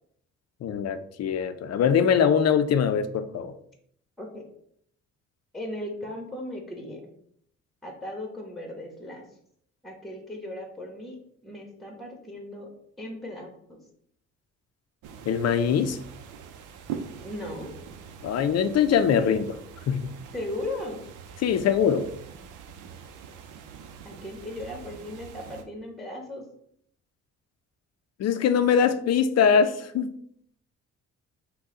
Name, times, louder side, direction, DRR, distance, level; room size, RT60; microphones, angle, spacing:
voice 1, 0.6-3.5 15.3-16.0 18.2-19.6 19.9-20.2 21.4-22.1 28.2-30.1, left 7 dB, 55° left, 10 dB, 0.5 m, -22 dB
voice 2, 5.5-7.1 7.8-9.3 9.8-11.2 11.4-12.7 13.0-13.8 17.2-17.7 20.3-21.0 24.0-26.4, left 1 dB, ahead, 2 dB, 1.1 m, -37 dB
sound 1, 15.0-25.6, right 7 dB, 90° right, 0.6 m, -43 dB
5.5 x 2.2 x 3.8 m, 0.67 s
cardioid pair, 90°, 30 cm